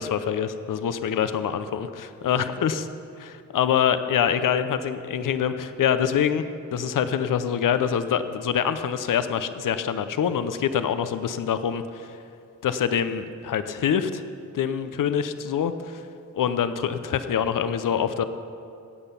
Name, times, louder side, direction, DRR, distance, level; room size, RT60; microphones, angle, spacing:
voice 1, 0.0-2.9 3.2-6.4 6.7-12.1 12.6-14.2 14.5-16.0 16.3-18.2, left 8 dB, 70° left, 11 dB, 0.8 m, -25 dB
15.5 x 8.3 x 5.7 m, 2.6 s
cardioid pair, 65°, 34 cm